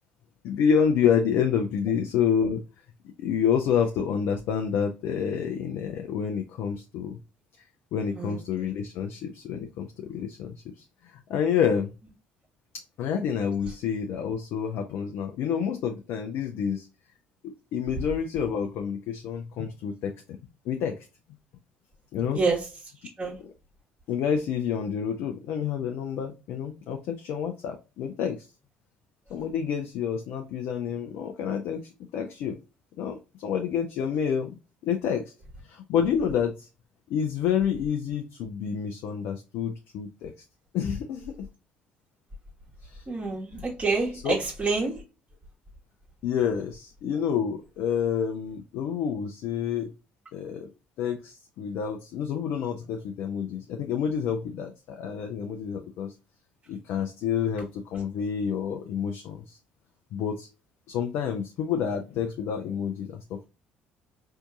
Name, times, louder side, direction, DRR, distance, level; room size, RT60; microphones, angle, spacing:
voice 1, 0.4-2.6 3.2-7.2 7.9-11.9 13.0-16.9 17.4-20.1 20.7-20.9 22.1-22.4 23.4-23.5 24.1-28.5 29.3-32.6 33.0-34.6 34.8-35.2 35.6-36.7 37.1-40.3 40.7-41.5 42.8-43.0 43.5-43.6 44.2-44.4 46.2-49.9 50.3-50.7 51.0-56.1 56.7-59.6 60.1-60.5 60.9-63.5, left 7 dB, 60° left, 4 dB, 0.5 m, -28 dB
voice 2, 8.2-8.7 22.3-22.6 23.2-23.4 43.1-45.0, right 4 dB, 25° right, -4 dB, 1.2 m, -28 dB
4.4 x 2.7 x 2.4 m, 0.30 s
figure-of-eight pair, 50°, 5 cm